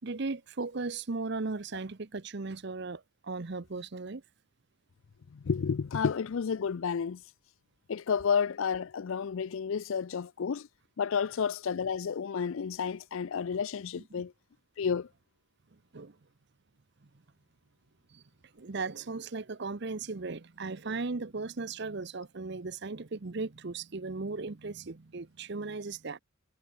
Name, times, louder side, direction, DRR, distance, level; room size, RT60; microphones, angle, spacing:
voice 1, 0.0-4.2 14.0-14.1 15.9-16.1 18.1-18.2 18.5-26.2, right 3 dB, 50° right, 0.8 m, -37 dB
voice 2, 5.3-7.2 7.9-10.7 11.0-14.3 14.8-15.1, left 6 dB, 65° left, 0.4 m, -31 dB
head